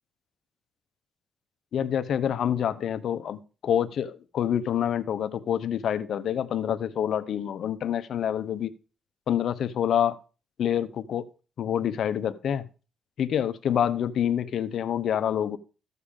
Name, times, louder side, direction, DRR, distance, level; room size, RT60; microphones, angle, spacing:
voice 1, 1.7-8.7 9.3-10.2 10.6-11.2 11.6-12.7 13.2-15.6, left 9 dB, 65° left, 13 dB, 0.7 m, -27 dB
14.0 x 6.8 x 3.7 m, 0.35 s
cardioid pair, 90°, 0 cm